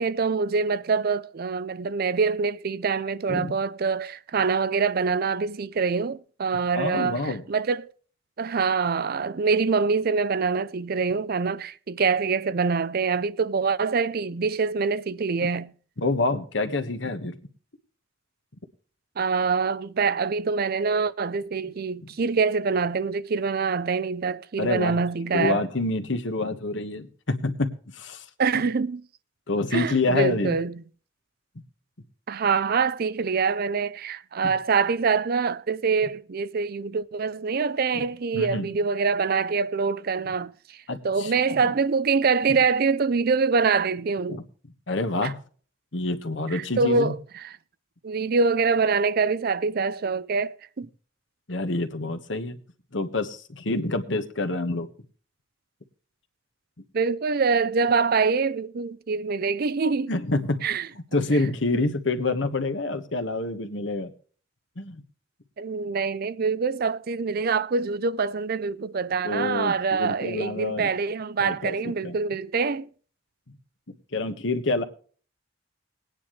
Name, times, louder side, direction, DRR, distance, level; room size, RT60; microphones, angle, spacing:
voice 1, 0.0-7.9 8.4-15.7 19.2-25.7 28.4-29.0 29.7-30.8 32.3-40.8 41.0-44.4 45.2-45.3 46.5-47.5 48.0-50.9 56.9-60.1 60.6-60.9 61.7-61.8 65.6-72.9, right 5 dB, 50° right, 0.5 m, -25 dB
voice 2, 6.7-7.4 15.4-15.5 16.0-17.3 24.6-25.0 25.3-28.3 28.5-28.6 29.5-30.6 34.4-34.5 37.9-38.0 38.3-38.7 40.9-41.7 44.3-44.4 44.9-45.4 45.9-47.2 51.5-52.6 52.9-54.9 60.1-60.6 61.1-64.1 64.8-65.0 69.2-70.9 71.4-72.2 74.1-74.8, left 2 dB, 70° left, 1.4 m, -27 dB
20.0 x 9.7 x 3.2 m
head